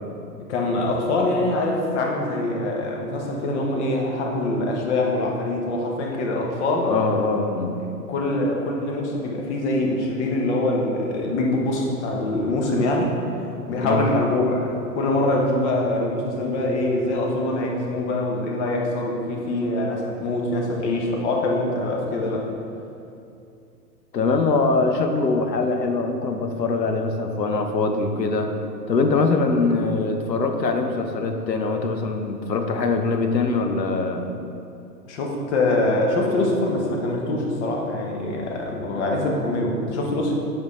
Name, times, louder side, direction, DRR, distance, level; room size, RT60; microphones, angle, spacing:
voice 1, 0.5-6.9 8.1-13.2 13.7-22.5 35.1-40.3, left 2 dB, 45° left, 0 dB, 1.2 m, -24 dB
voice 2, 6.8-7.8 13.8-14.1 24.1-28.5 28.9-34.3, left 3 dB, 90° left, 5 dB, 0.9 m, -23 dB
8.0 x 5.4 x 3.2 m, 2.6 s
hypercardioid pair, 125°, 49 cm